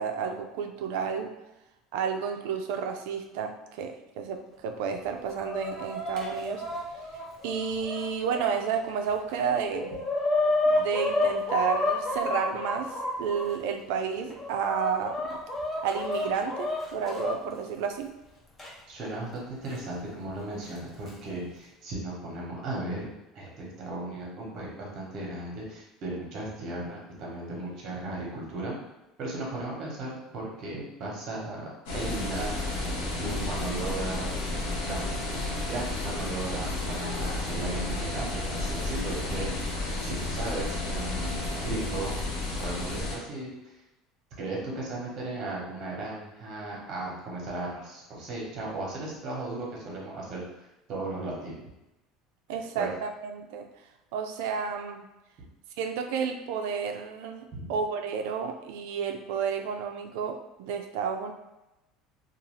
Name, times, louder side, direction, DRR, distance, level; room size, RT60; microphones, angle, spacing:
voice 1, 0.0-1.3 1.9-6.6 7.4-9.9 10.7-15.4 15.8-18.1 52.5-53.7 54.1-55.0 55.8-61.3, right 6 dB, 75° right, 5 dB, 0.3 m, -31 dB
Chicken rooster, 5.0-8.5 9.1-9.2 9.4-13.5 14.1-17.3 18.6-18.7 19.7-19.8 20.8-21.1, left 2 dB, 15° left, 0.5 m, -30 dB
voice 2, 18.9-23.1 23.3-28.7 29.2-31.6 31.9-32.5 33.2-34.3 34.8-35.0 35.3-39.5 40.0-41.3 41.6-42.2 42.6-43.8 44.4-50.4 50.9-51.6 52.8-52.9, right 2 dB, 40° right, -3 dB, 0.9 m, -36 dB
sound 1, 31.9-43.2, left 2 dB, 80° left, 0.9 m, -32 dB
2.6 x 2.3 x 3.1 m, 0.95 s
cardioid pair, 165°, 0 cm